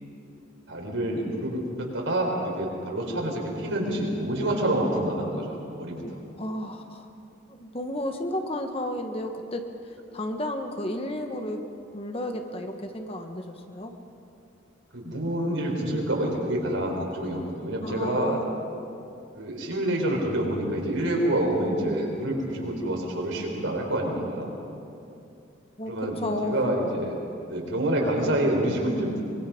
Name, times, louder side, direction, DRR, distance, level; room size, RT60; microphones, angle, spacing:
voice 1, 0.7-6.2 14.9-18.4 19.4-24.5 25.9-26.2 26.4-27.1 27.5-29.2, right 1 dB, 80° right, -1 dB, 5.1 m, -27 dB
voice 2, 6.0-7.1 7.5-9.7 10.1-11.6 11.9-13.9 17.8-18.6 25.8-26.8, left 1 dB, 30° left, 5 dB, 1.4 m, -32 dB
24.5 x 23.0 x 5.3 m, 2.6 s
head